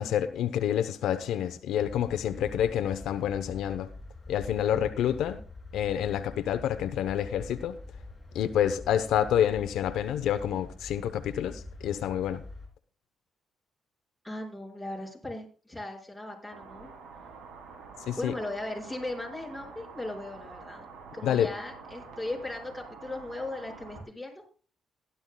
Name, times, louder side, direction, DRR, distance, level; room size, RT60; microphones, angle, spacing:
voice 1, 0.0-3.9 4.3-5.4 5.7-7.8 8.3-12.4 18.1-18.3 21.2-21.5, left 10 dB, 80° left, 0.8 m, -28 dB
sound 1, 1.8-12.7, left 2 dB, 20° left, 6.3 m, -45 dB
voice 2, 14.2-16.9 18.2-24.4, left 2 dB, ahead, 5.6 m, -38 dB
sound 2, 16.5-24.0, right 5 dB, 80° right, 3.0 m, -47 dB
16.5 x 11.5 x 2.3 m
cardioid pair, 90°, 0 cm